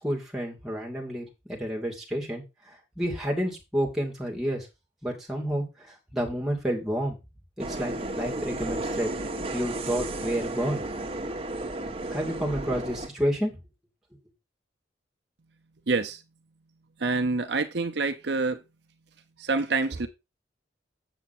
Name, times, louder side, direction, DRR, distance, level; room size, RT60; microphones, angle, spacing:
voice 1, 0.0-4.7 5.0-7.2 7.6-9.1 9.5-10.8 12.1-13.6, equal, 5° right, 2.5 m, -30 dB
sound 1, 7.6-13.1, right 2 dB, 30° right, 1.3 m, -33 dB
voice 2, 15.9-16.2 17.0-18.6 19.4-20.1, right 3 dB, 60° right, 0.8 m, -26 dB
8.0 x 7.0 x 4.3 m
head